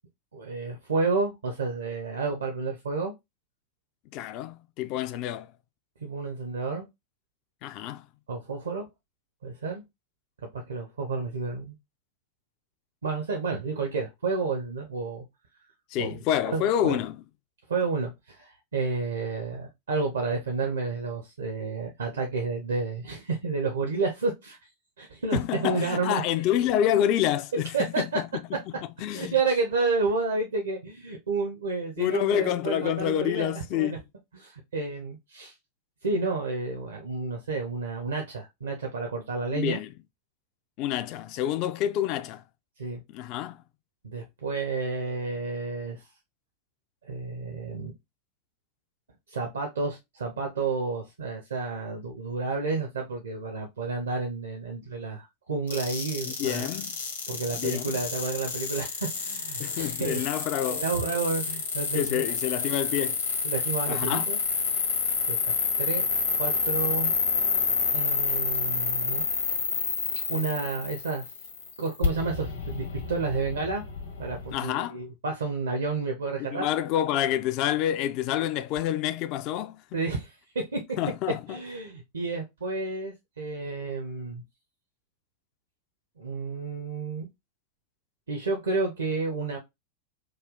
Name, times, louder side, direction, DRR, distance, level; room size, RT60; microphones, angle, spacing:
voice 1, 0.3-3.1 6.0-6.9 8.3-8.9 9.4-9.8 10.4-11.8 13.0-15.3 16.0-16.2 16.5-17.0 17.7-24.6 25.0-26.2 27.5-28.0 29.1-34.0 34.3-35.5 36.0-39.8 42.8-43.0 44.0-46.0 47.1-47.9 49.3-56.7 57.3-60.3 60.7-62.2 63.4-64.4 65.3-66.1 66.4-67.1 67.9-69.2 70.3-71.3 71.8-73.8 74.2-76.7 79.9-80.8 81.5-84.4 86.2-87.3 88.3-89.6, right 3 dB, 70° right, 0.7 m, -30 dB
voice 2, 4.1-5.5 7.6-8.1 15.9-17.2 25.3-28.3 29.0-29.3 32.0-34.0 39.5-39.9 40.8-42.4 43.1-43.6 56.2-56.9 57.5-58.0 59.6-60.8 61.9-63.2 63.9-64.3 74.5-75.0 76.4-79.8 81.0-81.6, left 11 dB, 40° left, 0.3 m, -28 dB
sound 1, 55.7-74.6, left 5 dB, 70° left, 1.0 m, -29 dB
3.2 x 2.3 x 3.7 m
figure-of-eight pair, 90°, 0 cm